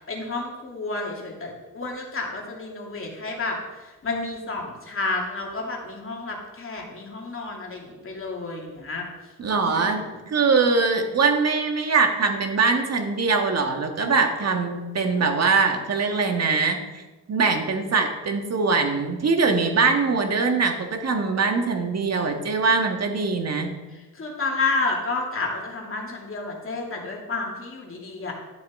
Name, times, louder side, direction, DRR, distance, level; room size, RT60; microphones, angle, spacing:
voice 1, 0.0-3.6 4.0-9.1 9.6-10.0 24.1-28.3, left 3 dB, 35° left, -1 dB, 2.6 m, -30 dB
voice 2, 9.4-17.0 17.3-23.7, right 4 dB, 45° right, 4 dB, 1.6 m, -22 dB
11.5 x 7.2 x 3.7 m, 1.2 s
supercardioid pair, 75°, 37 cm